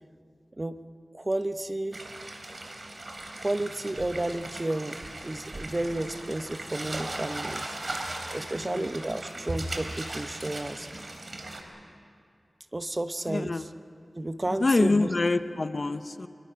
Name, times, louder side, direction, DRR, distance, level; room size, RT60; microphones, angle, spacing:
voice 1, 1.1-2.0 2.6-2.8 3.4-5.0 5.2-10.9 12.7-13.7 14.2-15.1, right 1 dB, 35° right, 10 dB, 0.9 m, -32 dB
sound 1, 1.9-11.6, right 2 dB, 55° right, 3.0 m, -38 dB
voice 2, 13.3-13.6 14.6-16.3, left 3 dB, 55° left, 11 dB, 0.8 m, -25 dB
25.0 x 25.0 x 5.8 m, 2.3 s
wide cardioid pair, 50°, 0 cm